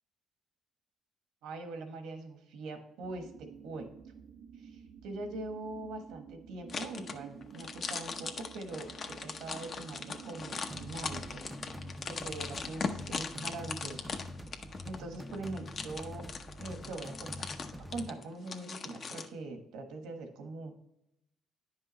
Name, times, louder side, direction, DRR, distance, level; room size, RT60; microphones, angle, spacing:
voice 1, 1.4-3.9 4.5-11.4 12.1-14.1 14.9-16.2 16.6-20.7, right 2 dB, 85° right, 6 dB, 1.3 m, -42 dB
sound 1, 3.0-12.9, right 7 dB, 65° right, 0.4 m, -52 dB
sound 2, 6.7-19.3, left 5 dB, 45° left, 0.7 m, -40 dB
sound 3, 10.7-18.1, left 1 dB, 5° right, 0.4 m, -46 dB
9.9 x 5.5 x 3.1 m, 0.82 s
cardioid pair, 110°, 0 cm